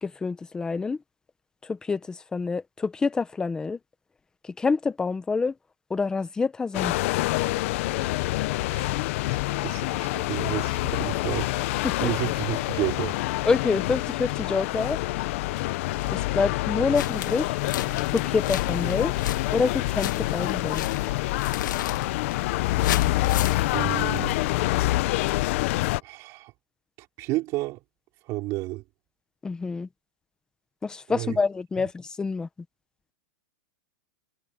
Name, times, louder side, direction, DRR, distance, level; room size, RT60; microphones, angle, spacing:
voice 1, 0.0-1.0 1.6-3.8 4.6-5.5 5.9-6.9 11.8-12.1 13.4-15.0 16.1-17.5 18.1-19.2 19.5-20.9 29.4-29.9 30.8-32.5, left 4 dB, 5° left, 0.9 m, -27 dB
sound 1, 6.7-26.0, left 18 dB, 45° left, 0.7 m, -27 dB
voice 2, 9.2-13.2 23.7-24.4 26.0-26.5 27.0-27.8 28.3-28.8 31.1-31.4 31.8-31.9, right 20 dB, 30° right, 5.0 m, -32 dB
sound 2, 16.9-24.5, left 12 dB, 85° left, 1.9 m, -34 dB
supercardioid pair, 170°, 10 cm